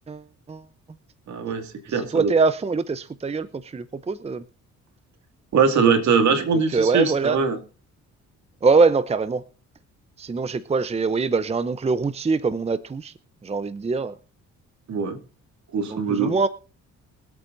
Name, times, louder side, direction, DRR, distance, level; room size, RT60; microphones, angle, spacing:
voice 1, 1.3-2.3 5.5-7.6 14.9-15.2 15.7-16.3, right 5 dB, 70° right, 4 dB, 2.5 m, -21 dB
voice 2, 1.9-4.4 6.7-7.4 8.6-9.4 10.2-13.1 13.4-14.1 15.9-16.5, right 4 dB, 20° right, 14 dB, 0.7 m, -23 dB
23.0 x 8.4 x 2.7 m, 0.36 s
cardioid pair, 90°, 30 cm